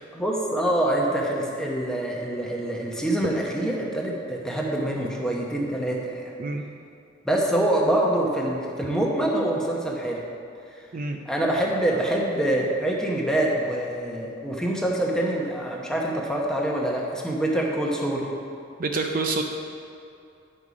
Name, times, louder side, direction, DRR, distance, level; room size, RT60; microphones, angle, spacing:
voice 1, 0.1-6.3 7.2-10.2 10.7-10.8 11.2-18.3, right 1 dB, 5° left, -2 dB, 0.9 m, -25 dB
voice 2, 18.8-19.4, right 3 dB, 45° right, 3 dB, 0.5 m, -27 dB
9.8 x 5.5 x 4.8 m, 2.5 s
head